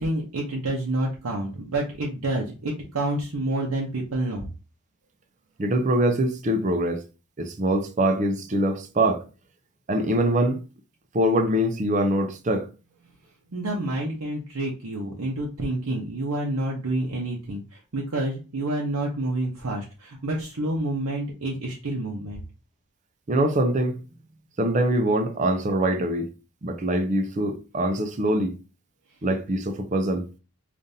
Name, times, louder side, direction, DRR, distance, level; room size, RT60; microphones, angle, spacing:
voice 1, 0.0-4.5 13.5-22.4, right 1 dB, 90° right, 0.8 m, -28 dB
voice 2, 5.6-7.0 7.4-9.2 9.9-10.6 11.1-12.7 23.3-24.0 24.6-26.3 26.6-28.6 29.2-30.3, right 1 dB, 35° right, 0.5 m, -23 dB
5.1 x 2.5 x 2.7 m
head